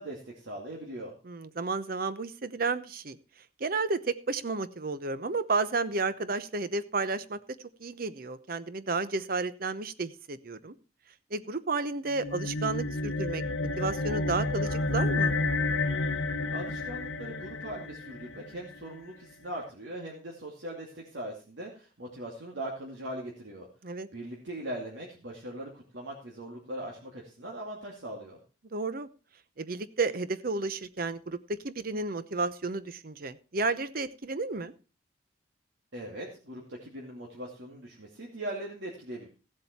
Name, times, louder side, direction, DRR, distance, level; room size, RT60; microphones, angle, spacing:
voice 1, 0.0-1.1 16.5-23.7 24.1-28.4 35.9-39.3, right 1 dB, 85° right, -2 dB, 2.4 m, -40 dB
voice 2, 1.2-3.2 3.6-10.7 11.3-13.4 13.8-15.4 23.8-24.1 28.7-29.1 29.6-34.7, right 3 dB, 55° right, 14 dB, 0.8 m, -32 dB
sound 1, 12.1-18.8, left 2 dB, 85° left, 1.0 m, -30 dB
16.0 x 7.6 x 4.3 m, 0.35 s
head